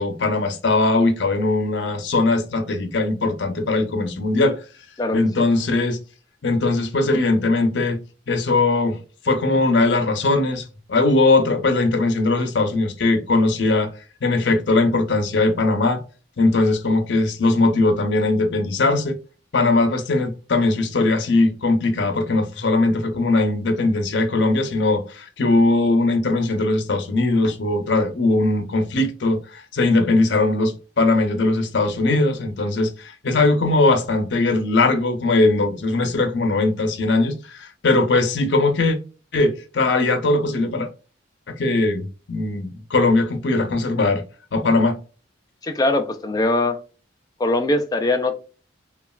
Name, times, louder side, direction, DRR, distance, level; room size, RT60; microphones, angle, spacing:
voice 1, 0.0-4.6 5.1-6.0 6.4-8.0 8.3-9.0 9.2-13.9 14.2-16.0 16.4-19.2 19.5-39.0 39.3-40.9 41.5-44.2 44.5-45.0, left 2 dB, 65° left, 0.6 m, -20 dB
voice 2, 5.0-5.5 45.6-46.8 47.4-48.3, left 2 dB, 20° left, 0.4 m, -21 dB
3.0 x 2.3 x 2.2 m
head